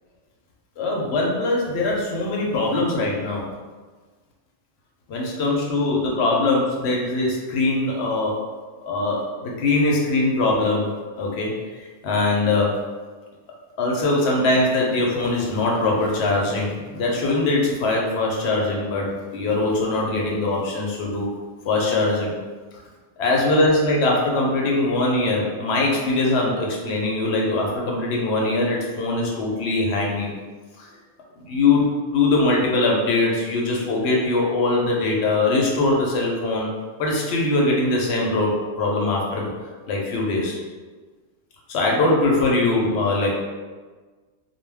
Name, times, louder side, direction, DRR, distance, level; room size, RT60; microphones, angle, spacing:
voice 1, 0.8-3.5 5.1-8.4 8.8-10.9 11.2-12.7 13.8-21.3 21.6-22.3 23.2-30.3 30.8-30.9 31.4-36.7 37.0-39.5 39.9-40.6 41.7-43.4, left 2 dB, 70° left, -2 dB, 0.8 m, -22 dB
2.2 x 2.2 x 3.3 m, 1.4 s
omnidirectional pair, 1.2 m